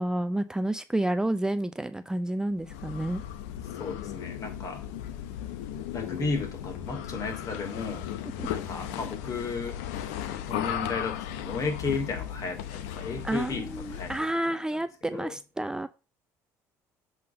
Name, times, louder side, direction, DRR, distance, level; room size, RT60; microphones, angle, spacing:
voice 1, 0.0-3.2 8.4-8.5 13.2-15.9, right 1 dB, 10° right, 0.5 m, -30 dB
sound 1, 2.6-14.3, left 10 dB, 90° left, 0.8 m, -36 dB
voice 2, 3.8-4.8 5.7-8.1 8.5-9.8 10.3-14.1 15.1-15.3, left 4 dB, 45° left, 2.8 m, -34 dB
7.5 x 3.9 x 5.2 m
supercardioid pair, 80°, 7 cm